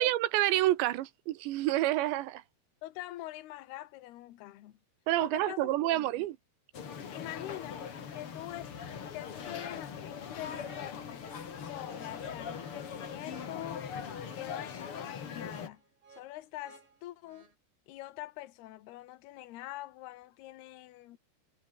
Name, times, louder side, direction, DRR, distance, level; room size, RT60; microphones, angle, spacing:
voice 1, 0.0-2.4 5.1-6.4, right 15 dB, 85° right, 3.4 m, -28 dB
voice 2, 2.8-4.8 5.2-6.1 7.1-7.8 8.1-8.7 9.1-11.3 11.6-13.9 14.3-15.8 16.1-17.5 17.9-21.2, left 16 dB, 70° left, 3.2 m, -44 dB
sound 1, 6.7-15.7, left 7 dB, 40° left, 2.3 m, -41 dB
sound 2, 10.6-17.5, right 5 dB, 55° right, 7.5 m, -59 dB
omnidirectional pair, 5.0 m